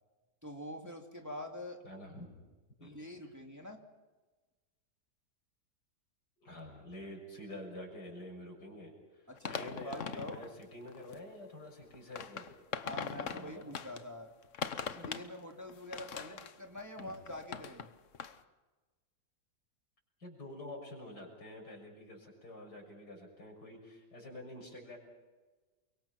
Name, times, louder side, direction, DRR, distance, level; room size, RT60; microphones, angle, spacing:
voice 1, 0.4-1.8 2.8-3.8 9.3-10.4 12.8-14.3 14.8-17.9, left 1 dB, 10° right, 2 dB, 2.5 m, -45 dB
voice 2, 1.8-2.3 2.8-2.9 6.4-8.9 9.4-12.5 13.0-13.7 17.0-17.1 20.2-25.0, left 1 dB, 90° left, 1 dB, 7.2 m, -48 dB
sound 1, 9.4-10.5 10.9-11.2 11.8-14.0 14.4-15.3 15.7-17.9 18.1-18.4, left 7 dB, 50° left, 1.3 m, -41 dB
29.0 x 24.0 x 5.9 m, 1.2 s
omnidirectional pair, 1.7 m